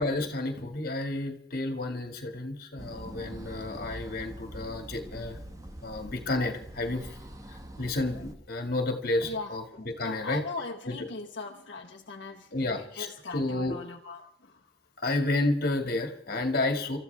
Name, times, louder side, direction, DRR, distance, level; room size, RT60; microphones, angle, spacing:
voice 1, 0.0-5.4 5.8-7.1 7.5-10.4 10.9-11.1 12.5-13.8 15.0-17.0, left 2 dB, 55° left, 5 dB, 2.1 m, -31 dB
sound 1, 2.8-8.3, right 1 dB, 20° right, 1.1 m, -44 dB
voice 2, 9.3-14.6, left 3 dB, 70° left, -1 dB, 1.2 m, -40 dB
28.0 x 14.0 x 3.5 m, 0.69 s
head